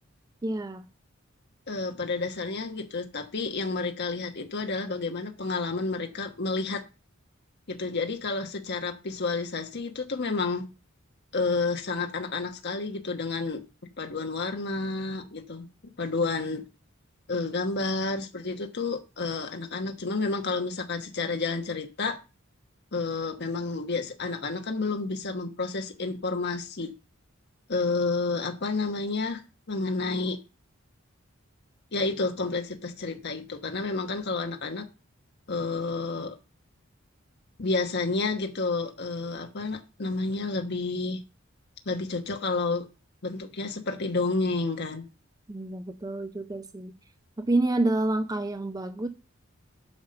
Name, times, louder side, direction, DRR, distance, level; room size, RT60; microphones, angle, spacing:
voice 1, 0.4-0.9 45.5-46.9 47.4-49.1, right 2 dB, 20° right, 0.5 m, -28 dB
voice 2, 1.7-6.8 7.7-10.7 11.3-13.6 14.0-15.7 16.0-16.6 17.3-22.2 22.9-26.9 27.7-29.4 29.7-30.4 31.9-34.9 35.5-36.4 37.6-41.2 41.8-42.9 43.2-45.1, left 3 dB, 55° left, 1.2 m, -30 dB
8.7 x 5.6 x 6.7 m
head